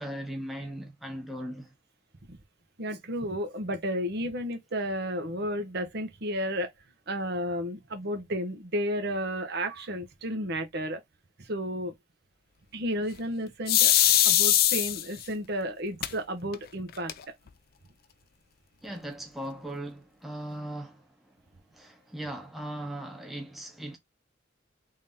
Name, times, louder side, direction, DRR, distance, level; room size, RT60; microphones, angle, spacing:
voice 1, 0.0-1.7 18.8-21.4 21.7-24.0, right 1 dB, ahead, 0.9 m, -38 dB
voice 2, 2.8-6.7 7.1-11.0 11.4-11.9 12.7-13.9 14.2-17.1, equal, 55° right, 0.9 m, -32 dB
Coke bottle open, 13.7-15.2 16.0-16.1 16.5-16.6 16.9-17.5, left 12 dB, 50° left, 0.4 m, -21 dB
3.7 x 2.7 x 3.5 m
head